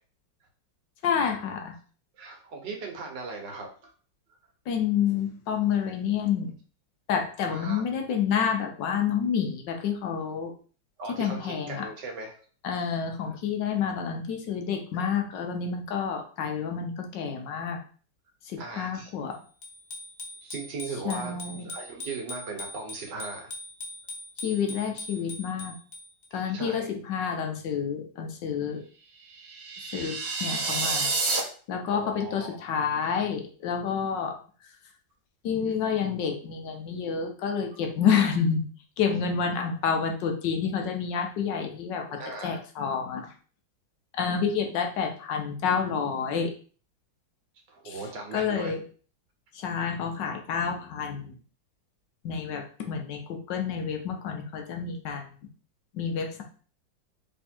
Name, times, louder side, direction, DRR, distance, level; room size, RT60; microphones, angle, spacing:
voice 1, 1.0-1.7 4.7-6.5 7.1-10.5 11.2-11.9 12.6-17.8 18.4-19.3 21.0-21.7 24.4-25.8 26.3-28.8 29.9-31.1 31.7-34.4 35.4-38.7 39.0-43.3 44.2-46.5 47.8-48.0 48.3-48.8 49.5-51.3 52.2-55.3 55.9-56.4, left 7 dB, 75° left, 3 dB, 1.4 m, -29 dB
voice 2, 2.2-3.9 7.5-7.8 11.0-12.3 18.6-19.1 20.4-21.3 21.6-23.5 26.3-26.9 31.9-32.6 42.1-42.6 47.7-48.7, right 3 dB, 70° right, 2 dB, 1.6 m, -38 dB
Bicycle bell, 19.6-26.3, left 2 dB, 55° left, 0.5 m, -41 dB
sound 1, 29.4-31.4, right 3 dB, 50° right, 0.8 m, -29 dB
3.6 x 3.4 x 4.3 m, 0.41 s
omnidirectional pair, 2.0 m